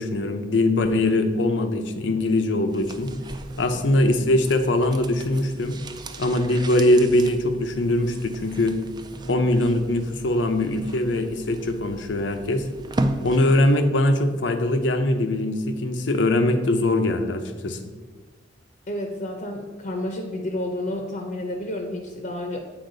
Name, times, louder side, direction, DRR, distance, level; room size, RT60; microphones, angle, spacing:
voice 1, 0.0-3.1 3.6-5.8 6.2-8.8 9.3-12.6 13.2-17.8, left 1 dB, 85° left, 7 dB, 0.7 m, -22 dB
sound 1, 2.7-13.9 14.2-14.3, right 1 dB, 25° right, 0.4 m, -35 dB
voice 2, 18.9-22.6, left 1 dB, 50° left, 3 dB, 0.7 m, -30 dB
8.0 x 4.4 x 3.9 m, 1.3 s
head